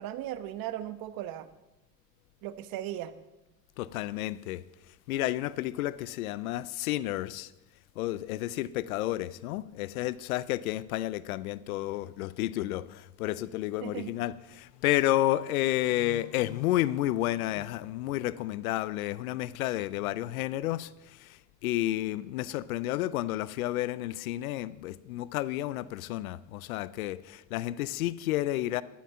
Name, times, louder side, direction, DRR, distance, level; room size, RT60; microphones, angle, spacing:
voice 1, 0.0-1.5 2.4-3.1 13.8-14.2, right 12 dB, 55° right, 1.2 m, -37 dB
voice 2, 3.8-4.6 5.1-7.5 8.0-28.8, left 15 dB, 85° left, 0.7 m, -31 dB
11.5 x 11.5 x 5.7 m
hypercardioid pair, 90°, 41 cm